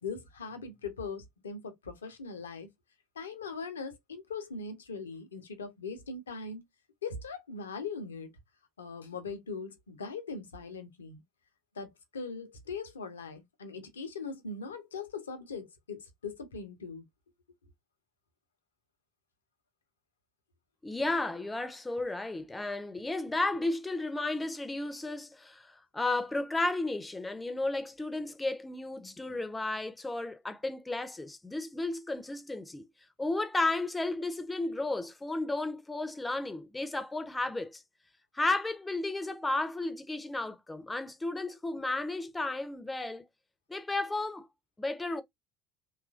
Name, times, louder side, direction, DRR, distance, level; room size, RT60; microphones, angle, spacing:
voice 1, 0.0-2.7 3.2-6.6 7.0-8.3 8.8-11.2 11.7-17.0, left 4 dB, 80° left, 0.6 m, -40 dB
voice 2, 20.8-32.9 33.2-37.8 38.3-43.2 43.7-44.5 44.8-45.2, left 2 dB, 15° left, 0.5 m, -33 dB
2.9 x 2.3 x 2.3 m
figure-of-eight pair, 65°, 0 cm